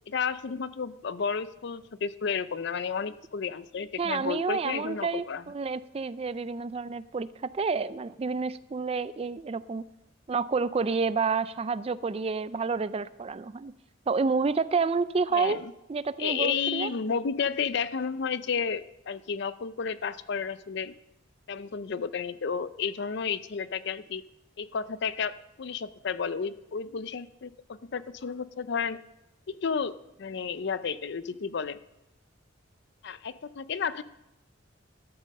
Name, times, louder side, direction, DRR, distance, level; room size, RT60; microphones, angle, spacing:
voice 1, 0.1-5.4 15.3-15.7 16.2-20.9 21.5-24.2 24.6-29.0 29.5-31.8 33.0-34.0, left 6 dB, 60° left, 15 dB, 0.5 m, -32 dB
voice 2, 4.0-9.9 10.3-13.7 14.1-15.6 15.9-16.9, right 4 dB, 30° right, 16 dB, 0.4 m, -29 dB
12.5 x 8.8 x 6.4 m, 0.91 s
head